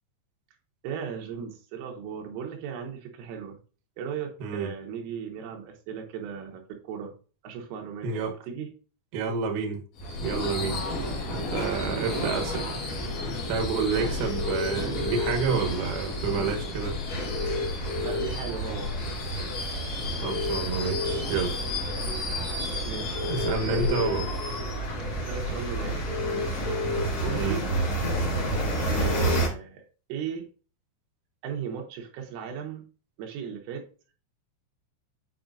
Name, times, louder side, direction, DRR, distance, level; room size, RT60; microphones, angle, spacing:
voice 1, 0.8-3.6 4.0-7.1 7.4-8.7 11.6-12.6 13.9-14.3 18.0-19.0 22.8-24.1 25.1-26.2 27.2-27.7 28.9-30.5 31.4-32.8 33.2-34.1, right 7 dB, 90° right, 3.9 m, -37 dB
voice 2, 4.4-4.7 8.0-8.3 9.1-9.8 10.2-10.8 11.3-12.5 13.5-17.0 20.2-21.6 23.3-24.3 27.3-27.7, right 5 dB, 70° right, 2.5 m, -29 dB
Subway metro underground / Screech, 10.0-25.9, left 3 dB, 60° left, 2.4 m, -34 dB
sound 1, 10.0-29.5, right 2 dB, 35° left, 2.9 m, -32 dB
sound 2, 14.3-15.3 17.3-18.3 20.2-21.2 23.1-24.1 26.1-27.0 29.0-29.4, left 4 dB, 75° left, 2.1 m, -31 dB
8.7 x 4.9 x 2.6 m
omnidirectional pair, 5.7 m